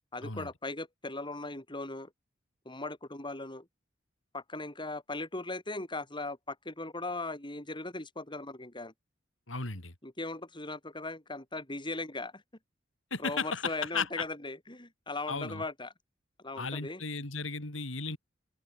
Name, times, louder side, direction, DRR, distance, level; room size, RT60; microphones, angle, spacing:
voice 1, 0.1-2.1 2.6-3.7 4.3-8.9 10.0-12.4 13.2-15.9 16.4-17.0, left 2 dB, 25° left, 6.3 m, -38 dB
voice 2, 9.5-9.9 13.1-14.1 15.3-15.6 16.6-18.2, left 4 dB, 85° left, 4.1 m, -35 dB
open air
head